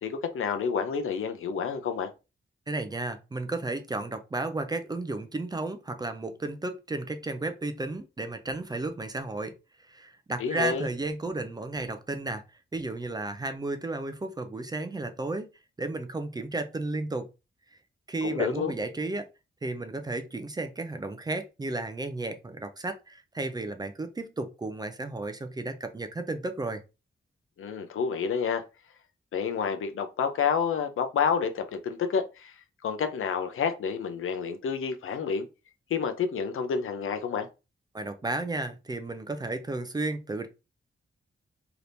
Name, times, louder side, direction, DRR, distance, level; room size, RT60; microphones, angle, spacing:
voice 1, 0.0-2.1 10.4-10.9 18.2-18.7 27.6-28.6 29.3-35.5 35.9-37.5, left 6 dB, 85° left, 0.6 m, -29 dB
voice 2, 2.7-9.5 9.9-12.4 12.7-15.5 15.8-17.3 18.1-19.3 19.6-26.8 37.9-40.5, right 2 dB, 20° right, 0.3 m, -33 dB
3.4 x 2.9 x 2.6 m
wide cardioid pair, 170°, 21 cm